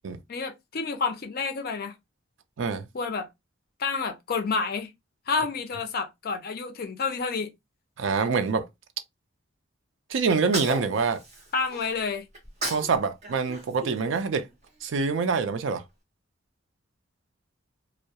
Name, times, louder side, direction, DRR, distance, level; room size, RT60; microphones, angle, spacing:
voice 1, 0.3-1.9 2.9-3.3 3.8-4.9 5.3-7.5 11.5-12.2, left 4 dB, 50° left, 0.5 m, -29 dB
voice 2, 8.0-8.6 10.1-11.2 12.7-14.5 14.8-15.8, right 5 dB, 70° right, 0.4 m, -25 dB
Sneeze, 10.3-11.9 12.3-12.9 13.2-14.7, right 2 dB, 35° right, 1.0 m, -35 dB
2.2 x 2.0 x 2.7 m
head